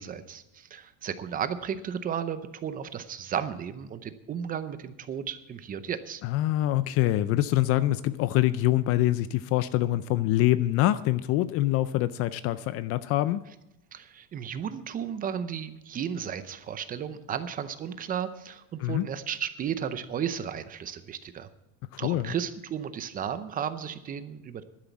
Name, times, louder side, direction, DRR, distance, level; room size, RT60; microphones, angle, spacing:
voice 1, 0.0-6.2 13.9-21.5 22.0-24.6, right 8 dB, 25° right, 0.6 m, -34 dB
voice 2, 6.2-13.4 18.8-19.1 22.0-22.3, left 15 dB, 40° left, 0.4 m, -25 dB
11.5 x 10.0 x 7.2 m
cardioid pair, 160°, 36 cm